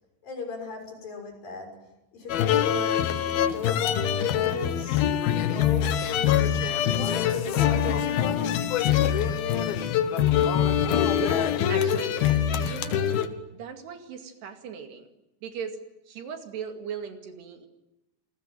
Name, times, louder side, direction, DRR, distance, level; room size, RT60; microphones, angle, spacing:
voice 1, 0.2-1.7 2.1-3.1 3.4-5.1 5.4-6.5 7.1-8.6, left 5 dB, 55° left, 3 dB, 7.9 m, -35 dB
sound 1, 2.3-13.3, left 9 dB, 70° left, 3.0 m, -24 dB
voice 2, 10.8-13.1 13.5-15.1 15.4-15.8 16.1-17.7, right 7 dB, 70° right, 6 dB, 4.2 m, -38 dB
28.5 x 20.5 x 9.3 m, 0.90 s
omnidirectional pair, 5.0 m